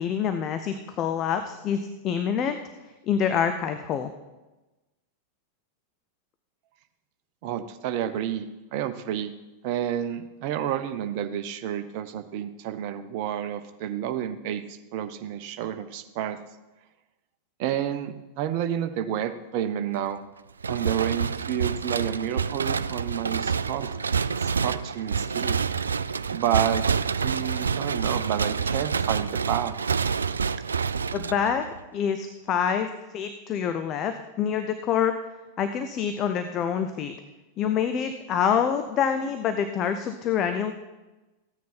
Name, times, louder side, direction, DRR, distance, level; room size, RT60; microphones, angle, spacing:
voice 1, 0.0-2.6 3.1-4.1 31.1-31.7 31.9-35.1 35.6-37.1 37.6-40.7, left 8 dB, 35° left, 8 dB, 0.8 m, -26 dB
voice 2, 7.4-9.3 9.6-16.4 17.6-20.2 20.7-23.9 24.3-25.6 26.3-26.9 27.2-29.7, right 10 dB, 45° right, 9 dB, 0.9 m, -30 dB
sound 1, 20.6-31.8, right 6 dB, 75° right, 0.3 m, -27 dB
15.0 x 9.3 x 4.4 m, 1.1 s
figure-of-eight pair, 90°, 0 cm